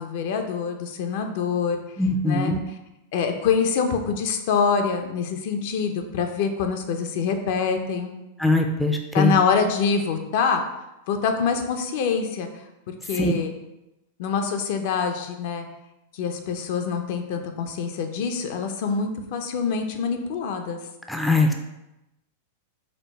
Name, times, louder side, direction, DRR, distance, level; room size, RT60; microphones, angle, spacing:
voice 1, 0.0-1.8 2.2-2.5 3.1-8.1 9.1-10.6 11.1-12.5 12.9-13.5 14.2-15.7 16.1-20.8, left 6 dB, 60° left, 5 dB, 0.5 m, -25 dB
voice 2, 2.0-2.6 8.4-9.3 13.2-13.3 21.1-21.5, left 2 dB, ahead, 3 dB, 0.4 m, -21 dB
4.9 x 2.0 x 4.4 m, 0.93 s
supercardioid pair, 135°, 0 cm